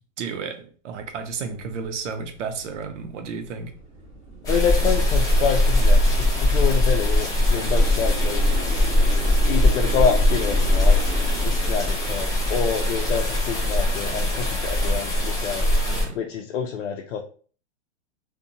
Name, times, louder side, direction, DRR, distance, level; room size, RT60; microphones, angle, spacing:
voice 1, 0.2-3.7 15.9-16.2, right 5 dB, 75° right, 6 dB, 0.6 m, -32 dB
sound 1, 1.0-14.4, right 2 dB, 15° right, 1.0 m, -40 dB
sound 2, 4.4-16.0, left 1 dB, 10° left, 0.4 m, -21 dB
voice 2, 4.5-8.5 9.5-11.0 11.4-15.7 16.1-17.2, left 7 dB, 85° left, 1 dB, 0.5 m, -27 dB
2.6 x 2.2 x 2.6 m, 0.42 s
hypercardioid pair, 140°, 36 cm